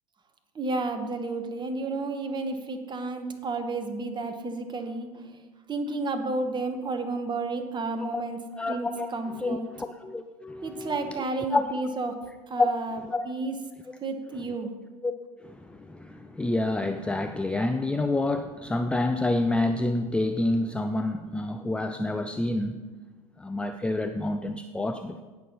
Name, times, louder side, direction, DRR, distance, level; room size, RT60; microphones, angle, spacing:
voice 1, 0.5-5.4 5.7-8.4 8.7-9.7 10.6-12.1 12.5-13.0 13.2-13.5 14.0-14.7, right 3 dB, 25° right, 7 dB, 1.5 m, -31 dB
voice 2, 8.6-9.1 9.4-11.2 11.5-11.6 12.6-12.7 13.0-13.3 13.9-14.0 15.0-15.1 15.4-22.8 23.4-25.2, left 2 dB, 5° left, 7 dB, 0.5 m, -28 dB
17.5 x 6.6 x 4.2 m, 1.3 s
figure-of-eight pair, 85°, 19 cm